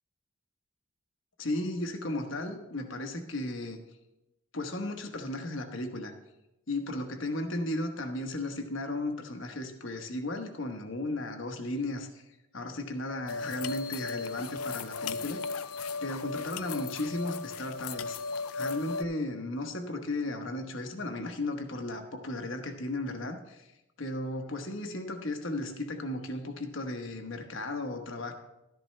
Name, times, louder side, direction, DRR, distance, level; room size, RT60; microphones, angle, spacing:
voice 1, 1.4-3.8 4.5-6.1 6.7-12.2 12.5-15.4 16.0-18.2 18.5-23.7 24.0-28.3, left 2 dB, 60° left, 5 dB, 1.1 m, -35 dB
sound 1, 13.3-19.0, left 4 dB, 80° left, 0.4 m, -36 dB
12.5 x 10.5 x 3.2 m, 0.96 s
head